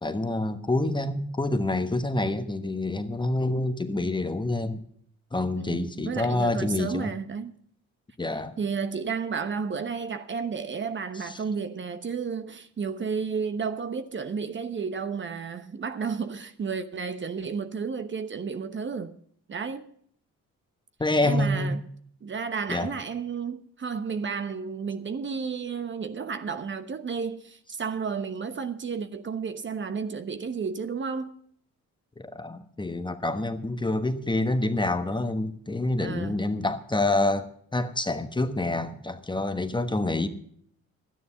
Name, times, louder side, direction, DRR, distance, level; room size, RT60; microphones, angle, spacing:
voice 1, 0.0-4.8 5.3-7.1 8.2-8.5 11.2-11.4 21.0-21.8 22.7-22.9 32.2-40.3, left 2 dB, 15° left, 1.3 m, -27 dB
voice 2, 5.5-7.5 8.6-19.2 19.5-19.8 21.2-21.8 22.2-31.3 36.0-36.3, right 5 dB, 40° right, 1.1 m, -32 dB
12.5 x 9.9 x 6.9 m
cardioid pair, 90°, 30 cm